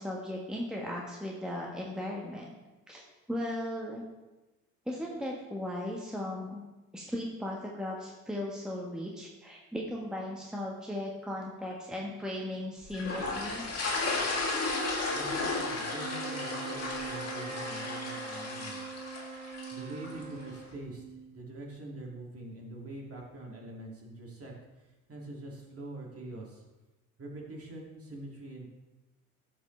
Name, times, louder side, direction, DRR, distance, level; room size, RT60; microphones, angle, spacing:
voice 1, 0.0-2.5 2.9-3.0 3.3-4.0 4.9-6.6 6.9-13.7, left 1 dB, ahead, -2 dB, 1.3 m, -37 dB
sound 1, 12.9-20.2, left 3 dB, 35° left, 2.6 m, -34 dB
voice 2, 15.1-19.0 19.7-26.6 27.2-28.7, right 1 dB, 30° right, -1 dB, 2.4 m, -44 dB
sound 2, 15.9-21.3, right 6 dB, 55° right, 0.9 m, -43 dB
12.5 x 5.4 x 3.3 m, 1.1 s
figure-of-eight pair, 55°, 44 cm